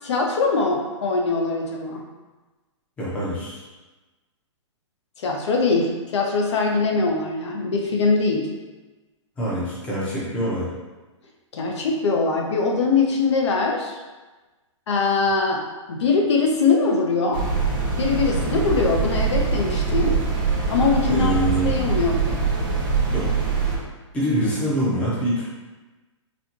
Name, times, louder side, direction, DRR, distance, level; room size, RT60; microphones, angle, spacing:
voice 1, 0.0-2.0 5.2-8.5 11.5-14.0 14.9-17.4 18.0-20.2 20.7-21.4 21.6-22.4, left 4 dB, 60° left, 1 dB, 0.6 m, -22 dB
voice 2, 3.0-3.6 9.4-10.6 21.1-21.7 23.1-23.3 24.1-25.5, right 1 dB, 5° left, -8 dB, 0.6 m, -24 dB
sound 1, 17.3-23.8, right 4 dB, 45° right, 0.8 m, -23 dB
4.2 x 2.3 x 2.9 m, 1.2 s
hypercardioid pair, 165°, 16 cm